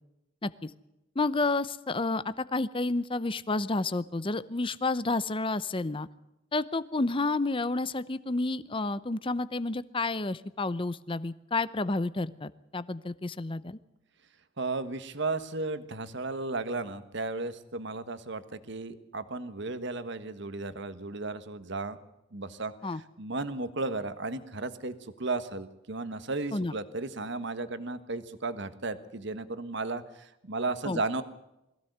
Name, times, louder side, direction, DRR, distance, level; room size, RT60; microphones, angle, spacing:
voice 1, 1.2-6.1 6.5-13.8 22.8-23.0 26.5-26.7 30.8-31.0, left 3 dB, 25° left, 15 dB, 0.7 m, -30 dB
voice 2, 14.6-22.0 22.3-31.2, right 3 dB, 60° right, 11 dB, 1.4 m, -34 dB
22.0 x 16.0 x 8.0 m, 0.90 s
head